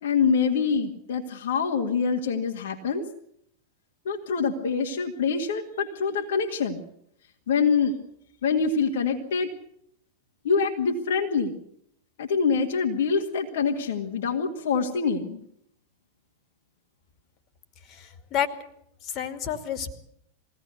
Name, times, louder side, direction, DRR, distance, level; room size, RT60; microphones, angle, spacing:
voice 1, 0.0-3.0 4.1-6.8 7.5-8.0 8.4-9.5 10.4-11.6 12.2-15.4, left 5 dB, 60° left, 2 dB, 2.0 m, -25 dB
voice 2, 17.9-18.5 19.0-19.9, left 9 dB, 35° left, 7 dB, 2.5 m, -30 dB
22.5 x 17.5 x 8.1 m, 0.73 s
figure-of-eight pair, 90°, 0 cm